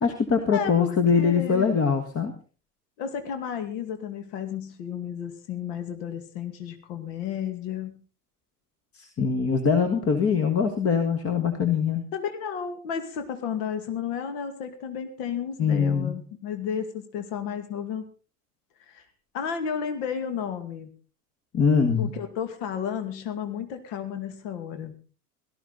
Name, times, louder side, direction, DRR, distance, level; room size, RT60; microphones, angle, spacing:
voice 1, 0.0-2.3 8.9-12.1 15.6-16.2 21.5-22.1, left 6 dB, 30° left, 7 dB, 1.8 m, -23 dB
voice 2, 0.5-1.8 3.0-8.0 12.1-18.0 18.9-19.0 19.3-20.9 22.0-24.9, left 7 dB, 55° left, 8 dB, 2.3 m, -32 dB
17.5 x 13.5 x 4.0 m, 0.36 s
figure-of-eight pair, 75°, 47 cm